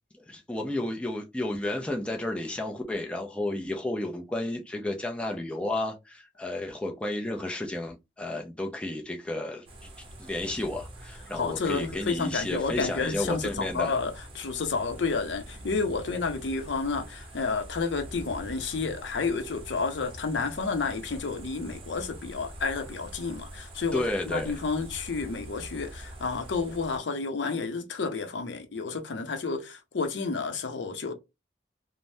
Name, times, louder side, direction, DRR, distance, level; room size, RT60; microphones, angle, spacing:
voice 1, 0.2-9.7 10.2-13.9 23.9-24.5, left 1 dB, 5° left, 0.4 m, -32 dB
sound 1, 9.7-27.0, right 1 dB, 30° right, 0.7 m, -45 dB
voice 2, 11.3-31.1, left 4 dB, 80° left, 0.6 m, -30 dB
3.3 x 2.0 x 2.6 m
head